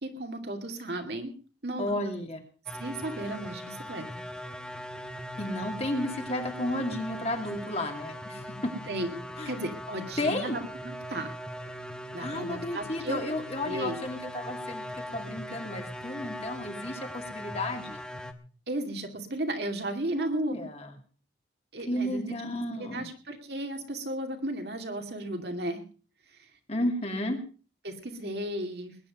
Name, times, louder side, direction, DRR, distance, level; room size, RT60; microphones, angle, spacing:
voice 1, 0.0-1.3 1.6-1.9 2.8-4.1 8.9-11.3 12.1-13.2 13.6-14.0 18.7-20.6 21.7-22.3 22.8-25.8 27.8-29.0, right 1 dB, 60° right, 4 dB, 2.6 m, -34 dB
voice 2, 1.8-2.4 5.4-8.7 9.4-9.5 10.2-10.6 12.2-18.0 20.1-20.9 21.9-23.1 26.7-27.4, left 1 dB, 35° left, 4 dB, 2.5 m, -33 dB
sound 1, 2.7-18.3, equal, 5° left, 1.1 m, -40 dB
21.0 x 10.0 x 5.2 m, 0.38 s
head